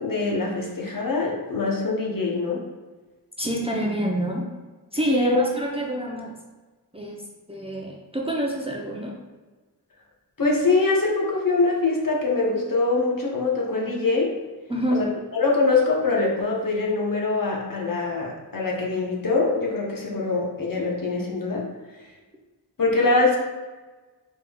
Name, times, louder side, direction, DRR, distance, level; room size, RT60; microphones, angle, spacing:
voice 1, 0.0-2.6 5.1-5.4 10.4-14.4 14.9-21.7 22.8-23.4, left 3 dB, 55° left, -2 dB, 0.8 m, -23 dB
voice 2, 3.4-4.5 4.9-6.3 6.9-7.2 7.5-9.1 14.7-15.1, right 1 dB, 15° right, -2 dB, 0.5 m, -27 dB
3.4 x 3.4 x 2.2 m, 1.3 s
wide cardioid pair, 55°, 40 cm